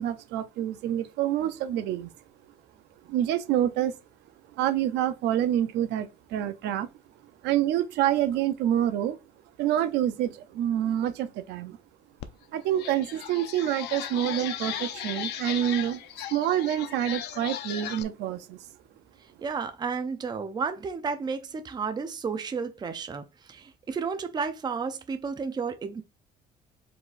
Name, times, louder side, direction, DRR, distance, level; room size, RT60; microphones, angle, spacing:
voice 1, 0.0-2.1 3.1-4.0 4.6-6.9 7.4-9.2 9.6-11.8 12.5-16.0 16.3-18.7, right 11 dB, 85° right, 0.6 m, -27 dB
sound 1, 12.2-12.3 12.7-18.0, left 11 dB, 80° left, 0.6 m, -36 dB
voice 2, 19.2-26.0, right 5 dB, 25° right, 0.6 m, -32 dB
4.8 x 3.9 x 2.5 m
cardioid pair, 110°, 17 cm